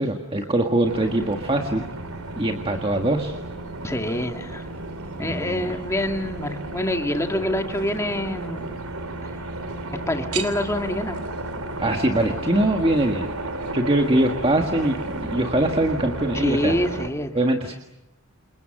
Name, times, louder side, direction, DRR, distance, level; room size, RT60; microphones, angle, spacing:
voice 1, 0.0-1.8 2.4-3.4 5.1-5.8 11.8-13.3 13.7-16.7 17.4-17.7, right 1 dB, 25° right, 4 dB, 1.8 m, -22 dB
sound 1, 0.8-17.1, right 2 dB, 85° right, 3.2 m, -33 dB
voice 2, 3.8-4.7 5.2-8.7 10.1-11.2 16.3-17.3, left 1 dB, 15° left, 4 dB, 2.1 m, -26 dB
28.5 x 28.5 x 6.7 m, 0.90 s
head